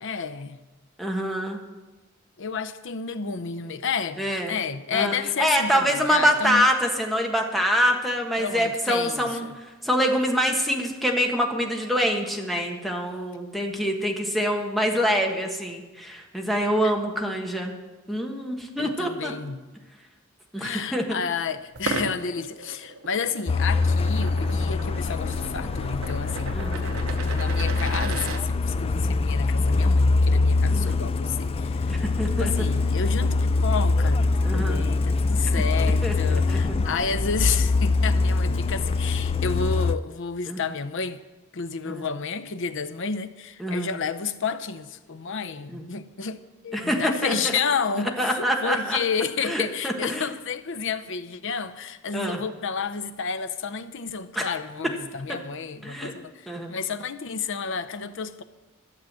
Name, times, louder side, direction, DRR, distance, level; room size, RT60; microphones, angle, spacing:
voice 1, 0.0-0.6 2.4-6.7 8.4-9.5 16.8-16.9 18.8-19.6 20.6-27.0 27.3-32.0 32.4-41.2 41.5-58.4, left 5 dB, 65° left, 0.7 m, -31 dB
voice 2, 1.0-1.6 4.2-4.6 4.9-9.5 9.8-17.7 18.1-19.3 20.5-21.2 26.5-26.9 30.7-31.0 31.9-32.5 34.4-34.8 36.0-36.1 36.5-36.6 40.5-40.6 41.8-42.1 43.6-43.9 45.7-45.9 46.7-47.5 48.2-49.0 49.4-50.3 52.1-52.4 54.3-54.5 55.8-56.1 56.5-56.7, equal, ahead, 1.5 m, -25 dB
sound 1, 21.7-28.4, right 3 dB, 75° right, 1.0 m, -35 dB
Truck, 23.5-40.0, left 3 dB, 25° left, 0.4 m, -23 dB
13.0 x 7.3 x 7.5 m
head